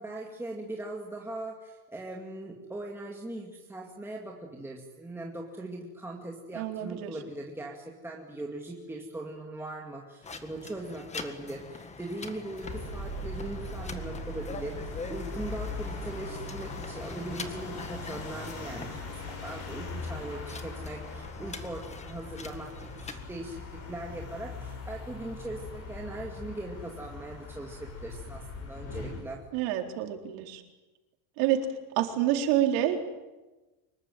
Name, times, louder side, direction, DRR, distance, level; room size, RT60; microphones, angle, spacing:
voice 1, 0.0-29.5, right 2 dB, 5° right, -1 dB, 2.2 m, -40 dB
voice 2, 6.5-7.1 29.5-30.6 31.4-31.6 32.0-33.0, right 12 dB, 80° right, 4 dB, 4.1 m, -27 dB
sound 1, 10.2-23.2, left 4 dB, 15° left, 1.7 m, -44 dB
sound 2, 12.6-29.2, left 2 dB, 35° left, 7.2 m, -40 dB
25.5 x 22.5 x 9.3 m, 1.1 s
cardioid pair, 170°, 44 cm